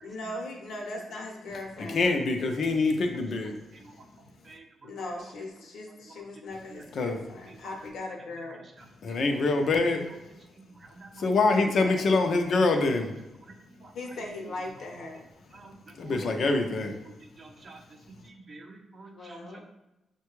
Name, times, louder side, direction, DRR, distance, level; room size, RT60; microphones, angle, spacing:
voice 1, 0.0-2.1 4.8-8.6 11.5-12.0 13.9-15.2 19.1-19.6, left 2 dB, 80° left, 1 dB, 0.9 m, -39 dB
voice 2, 1.9-3.5 7.0-7.2 9.0-10.1 11.2-13.1 16.0-17.0, left 3 dB, 60° left, 4 dB, 0.5 m, -25 dB
voice 3, 11.0-11.3 13.8-13.9 15.5-15.8 16.0-16.6 17.1-17.8 18.1-19.6, right 3 dB, 40° right, 3 dB, 0.6 m, -48 dB
5.6 x 2.2 x 3.0 m, 0.96 s
cardioid pair, 105°, 0 cm